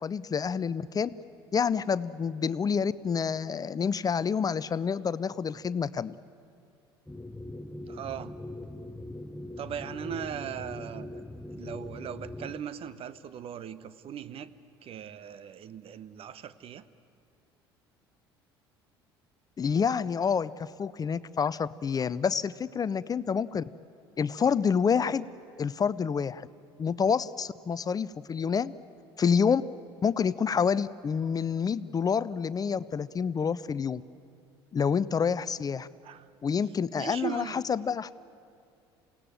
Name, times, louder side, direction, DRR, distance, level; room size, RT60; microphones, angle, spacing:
voice 1, 0.0-1.1 1.5-6.1 19.6-23.6 24.2-25.3 25.6-26.5 26.8-28.7 29.2-29.6 30.0-34.0 34.7-35.9 36.4-38.1, left 6 dB, 30° left, 17 dB, 0.6 m, -28 dB
sound 1, 7.1-12.6, left 1 dB, 5° left, 1.1 m, -41 dB
voice 2, 7.9-8.4 9.6-11.2 11.5-14.5 14.8-16.8 36.0-36.3 37.0-37.7, right 9 dB, 45° right, 15 dB, 1.0 m, -39 dB
28.0 x 17.5 x 9.1 m, 2.4 s
hypercardioid pair, 65°, 13 cm